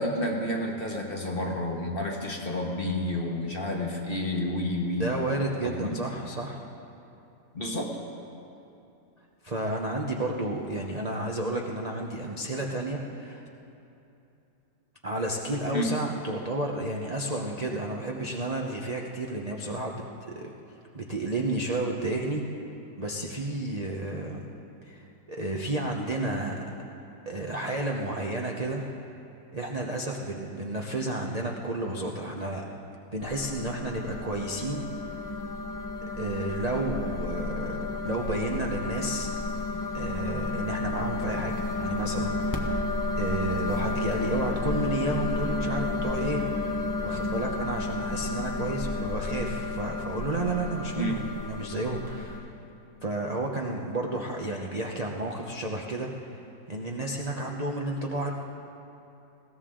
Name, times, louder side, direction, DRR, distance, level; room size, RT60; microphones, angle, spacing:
voice 1, 0.0-5.1 5.6-6.0 7.5-8.0 15.7-15.9 51.0-51.2, left 1 dB, 35° left, 0 dB, 1.4 m, -30 dB
voice 2, 4.9-6.6 9.4-13.4 15.0-20.5 20.9-22.4 23.0-24.5 24.9-26.7 27.3-28.8 29.5-32.6 33.1-34.9 36.2-39.3 39.9-42.6 43.1-46.4 47.0-52.4 53.0-56.1 56.7-58.3, right 2 dB, 35° right, -1 dB, 0.6 m, -31 dB
sound 1, 33.2-52.4, left 2 dB, 15° left, 0.9 m, -32 dB
20.5 x 16.5 x 3.8 m, 2.8 s
omnidirectional pair, 2.0 m